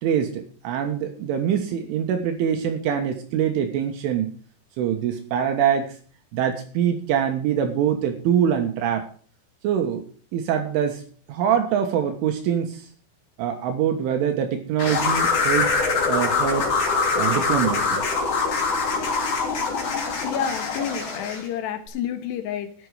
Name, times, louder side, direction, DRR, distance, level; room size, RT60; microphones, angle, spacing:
voice 1, 0.0-4.3 4.8-6.0 6.3-9.1 9.6-10.1 10.3-11.0 11.3-12.9 13.4-15.7 16.1-16.7 17.2-18.0, right 9 dB, 75° right, 5 dB, 3.7 m, -24 dB
sound 1, 14.8-21.5, left 4 dB, 40° left, 3.8 m, -23 dB
voice 2, 20.2-22.9, left 8 dB, 65° left, 9 dB, 3.1 m, -29 dB
13.5 x 10.5 x 4.9 m, 0.43 s
omnidirectional pair, 6.0 m